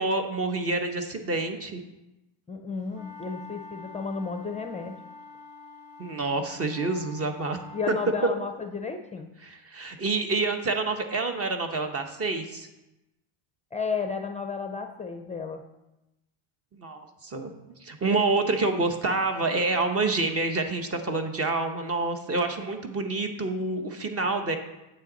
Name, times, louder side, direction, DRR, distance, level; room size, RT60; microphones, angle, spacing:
voice 1, 0.0-1.8 6.0-7.6 9.4-12.7 16.8-17.5 17.8-24.6, right 3 dB, 30° right, 6 dB, 1.1 m, -28 dB
voice 2, 2.5-5.0 7.7-9.3 13.7-15.6, left 5 dB, 15° left, 5 dB, 0.6 m, -33 dB
sound 1, 2.9-8.4, left 3 dB, 90° right, 2.5 m, -46 dB
9.1 x 8.0 x 4.0 m, 0.96 s
cardioid pair, 120°, 50 cm